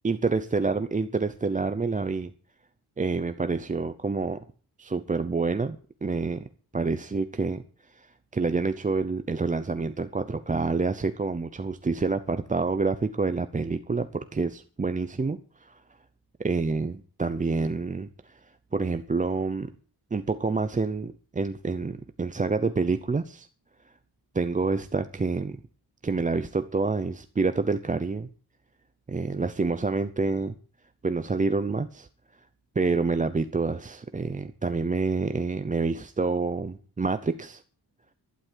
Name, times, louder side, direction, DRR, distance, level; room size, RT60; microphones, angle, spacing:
voice 1, 0.0-2.3 3.0-4.4 4.8-6.5 6.7-7.6 7.9-15.8 16.4-18.4 18.7-19.7 20.1-23.5 24.3-25.6 26.0-28.3 29.1-30.5 31.0-32.1 32.8-37.6, right 4 dB, 20° right, 0.7 m, -28 dB
12.0 x 11.5 x 7.4 m
wide cardioid pair, 155°, 39 cm